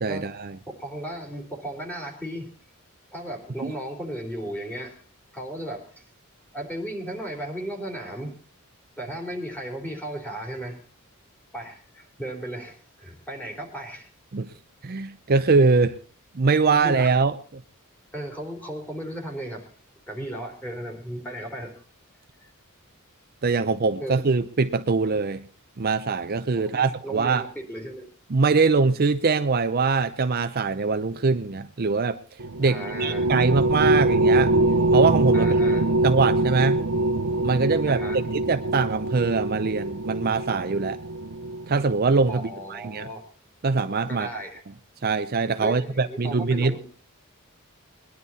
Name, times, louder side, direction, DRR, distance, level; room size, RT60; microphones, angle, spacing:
voice 1, 0.0-0.6 3.6-3.7 14.3-14.5 14.8-16.0 16.3-17.3 23.4-25.4 25.8-27.4 28.3-32.2 32.6-34.5 34.9-35.5 36.0-36.8 37.4-38.0 38.3-41.0 41.7-43.1 43.6-44.3 45.0-46.8, right 4 dB, 45° right, 9 dB, 0.6 m, -23 dB
voice 2, 0.8-2.5 3.1-5.0 5.3-5.8 6.5-8.4 9.0-10.8 11.5-14.1 16.7-17.2 18.1-19.7 20.1-21.8 24.0-24.2 26.6-28.1 32.6-33.3 35.3-35.8 37.9-38.2 42.3-43.2 44.1-44.6 45.6-46.8, right 1 dB, 10° left, 1 dB, 3.5 m, -35 dB
sound 1, 32.4-42.1, right 2 dB, 80° right, 0.8 m, -23 dB
21.0 x 11.0 x 4.2 m, 0.40 s
head